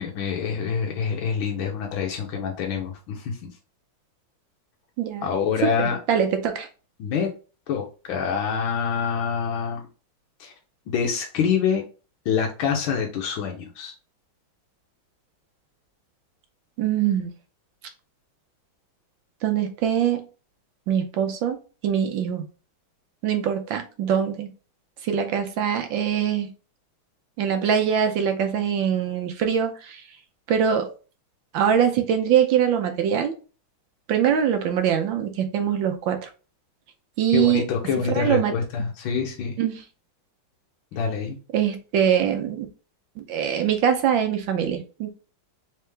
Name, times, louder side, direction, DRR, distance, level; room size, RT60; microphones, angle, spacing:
voice 1, 0.0-3.4 5.2-6.0 7.0-7.3 7.7-9.8 10.4-10.5 10.9-11.8 12.3-13.9 37.3-39.5 40.9-41.4, left 6 dB, 85° left, 1 dB, 1.5 m, -26 dB
voice 2, 5.0-5.3 5.8-6.7 16.8-17.3 19.4-20.2 20.9-21.6 21.8-22.5 23.2-24.5 25.0-26.5 27.4-30.0 30.5-30.9 31.5-33.3 34.1-36.3 37.2-37.7 38.1-38.5 39.6-39.8 41.5-42.7 43.2-45.1, right 8 dB, 75° right, 6 dB, 1.3 m, -23 dB
3.7 x 3.4 x 3.2 m, 0.35 s
omnidirectional pair, 2.2 m